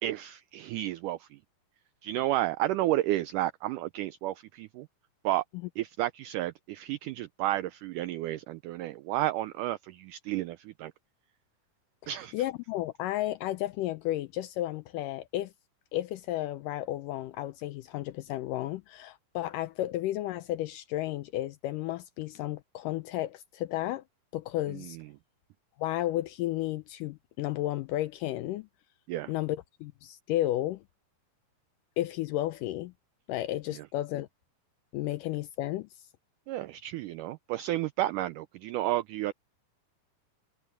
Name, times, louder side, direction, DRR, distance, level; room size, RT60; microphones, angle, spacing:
voice 1, 0.0-1.4 2.0-4.9 5.2-5.4 5.8-10.9 12.1-12.4 24.7-25.0 29.1-29.3 33.7-33.8 36.5-39.3, right 15 dB, 85° right, 1.8 m, -32 dB
voice 2, 12.3-15.5 15.9-24.0 24.3-25.0 25.8-28.7 29.3-30.8 32.0-32.9 33.3-34.3 34.9-35.9, left 15 dB, 80° left, 1.9 m, -33 dB
omnidirectional pair, 4.3 m